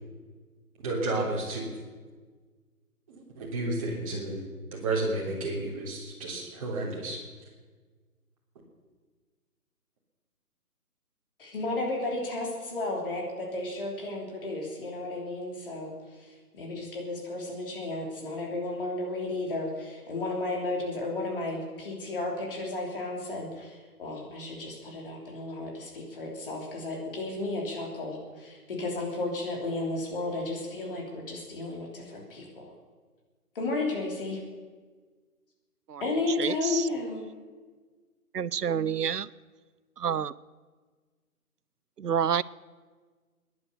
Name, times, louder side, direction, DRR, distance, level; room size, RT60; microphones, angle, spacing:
voice 1, 0.8-1.7 3.1-4.4 4.7-7.2, right 2 dB, 20° right, -3 dB, 3.4 m, -31 dB
voice 2, 11.4-32.7 33.6-34.4 36.0-37.2, left 2 dB, 35° left, 0 dB, 3.3 m, -33 dB
voice 3, 36.3-36.9 38.3-39.3 40.0-40.3 42.0-42.4, right 8 dB, 85° right, 20 dB, 0.7 m, -28 dB
20.0 x 11.0 x 6.8 m, 1.5 s
figure-of-eight pair, 155°, 46 cm